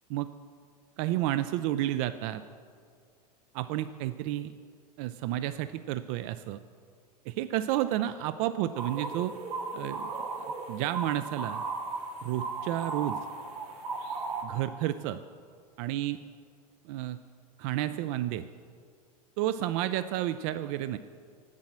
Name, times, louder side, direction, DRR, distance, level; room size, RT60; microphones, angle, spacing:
voice 1, 1.0-2.4 3.5-4.5 5.0-6.6 7.3-9.3 9.7-10.1 10.7-11.6 12.2-13.2 14.4-15.2 15.8-16.2 16.8-17.2 17.6-18.4 19.4-21.0, right 13 dB, 55° right, 12 dB, 0.4 m, -31 dB
sound 1, 8.7-14.4, right 3 dB, 80° right, 2.0 m, -36 dB
7.6 x 7.4 x 7.3 m, 2.1 s
hypercardioid pair, 110°, 20 cm